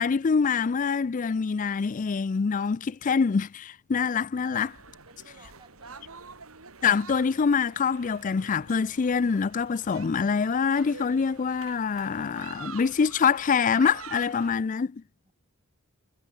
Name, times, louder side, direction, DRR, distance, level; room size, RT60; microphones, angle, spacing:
voice 1, 0.0-4.7 6.8-15.0, left 5 dB, 40° left, 0.4 m, -25 dB
sound 1, 4.5-14.6, right 5 dB, 85° right, 4.0 m, -47 dB
voice 2, 5.1-6.4 15.2-15.3, right 3 dB, 25° right, 6.8 m, -58 dB
head